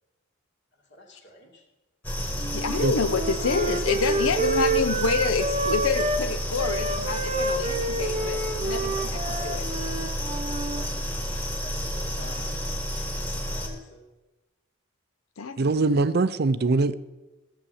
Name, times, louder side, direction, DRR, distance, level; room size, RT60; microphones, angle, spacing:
voice 1, 0.7-1.6 8.1-11.0 11.6-14.0, left 1 dB, 55° left, 2.5 m, -47 dB
sound 1, 2.0-13.7, equal, 10° left, 1.5 m, -31 dB
voice 2, 2.3-8.4 8.7-8.9 9.3-9.7 15.4-15.6, left 5 dB, 85° left, 0.7 m, -27 dB
Wind instrument woodwind instrument, 2.4-6.2 6.6-10.8, right 2 dB, 30° right, 0.8 m, -29 dB
voice 3, 15.6-16.9, right 3 dB, 50° right, 0.5 m, -22 dB
14.0 x 7.3 x 7.1 m
head